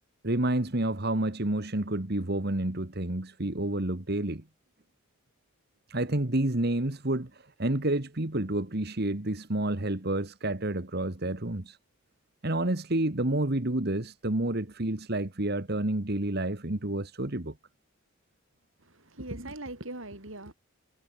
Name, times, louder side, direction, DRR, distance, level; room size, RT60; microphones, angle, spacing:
voice 1, 0.2-4.4 5.9-11.8 12.4-17.5, right 1 dB, 50° right, 1.8 m, -29 dB
voice 2, 18.8-20.5, right 2 dB, 65° right, 4.0 m, -40 dB
head